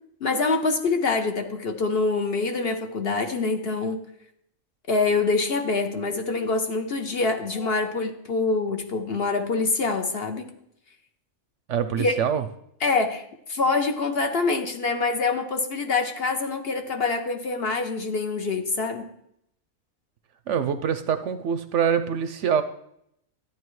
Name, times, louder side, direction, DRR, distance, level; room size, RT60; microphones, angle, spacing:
voice 1, 0.2-4.0 4.9-10.5 12.0-12.2 12.8-19.1, left 3 dB, 50° left, 5 dB, 0.9 m, -25 dB
voice 2, 11.7-12.4 20.5-22.6, right 7 dB, 65° right, 11 dB, 0.8 m, -24 dB
12.5 x 9.8 x 3.1 m, 0.74 s
omnidirectional pair, 1.5 m